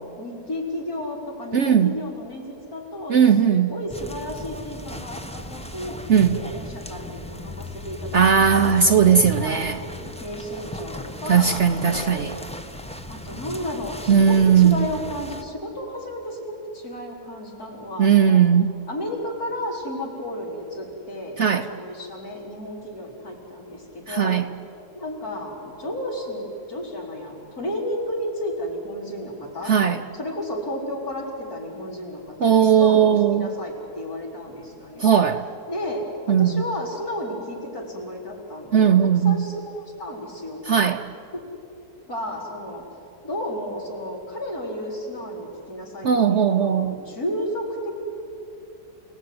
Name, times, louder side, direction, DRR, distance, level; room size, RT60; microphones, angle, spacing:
voice 1, 0.2-2.4 2.7-9.6 10.2-12.2 13.1-18.4 18.9-24.4 24.9-29.7 30.1-35.1 35.7-40.6 41.3-41.4 42.1-42.8 43.2-47.9, left 1 dB, 65° left, 5.0 m, -33 dB
voice 2, 1.5-1.9 3.1-3.7 6.1-6.4 8.1-9.8 11.3-12.3 14.1-14.9 18.0-18.8 21.4-21.7 24.1-24.5 29.7-30.0 32.4-33.5 35.0-35.4 36.3-36.6 38.7-39.5 40.7-41.0 46.0-47.0, right 7 dB, 55° right, 0.9 m, -18 dB
sound 1, 3.9-15.4, left 2 dB, 5° left, 0.8 m, -36 dB
29.5 x 18.0 x 9.6 m
omnidirectional pair, 1.7 m